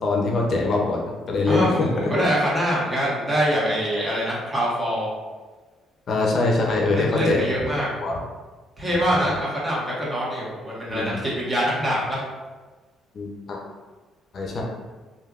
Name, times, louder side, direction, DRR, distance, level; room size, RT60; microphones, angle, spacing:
voice 1, 0.0-1.9 3.5-3.6 6.1-7.4 8.0-8.2 8.9-9.2 10.9-11.2 13.1-13.6 14.3-14.6, left 3 dB, 55° left, -1 dB, 0.5 m, -23 dB
voice 2, 1.4-5.1 6.8-7.9 8.8-12.2, equal, 20° right, -7 dB, 1.4 m, -24 dB
3.2 x 2.6 x 2.4 m, 1.3 s
supercardioid pair, 70°, 0 cm